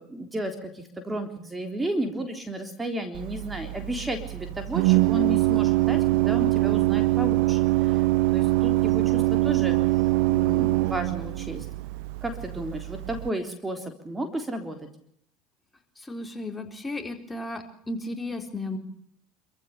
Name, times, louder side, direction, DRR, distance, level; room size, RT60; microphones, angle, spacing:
voice 1, 0.0-8.1 8.3-9.9 10.3-11.7 12.2-14.9, right 1 dB, 15° right, 6 dB, 3.6 m, -33 dB
Organ, 3.1-13.3, right 20 dB, 75° right, 0.8 m, -23 dB
voice 2, 16.0-18.8, left 2 dB, 15° left, 4 dB, 4.2 m, -34 dB
27.0 x 15.0 x 6.8 m, 0.70 s
supercardioid pair, 95°, 0 cm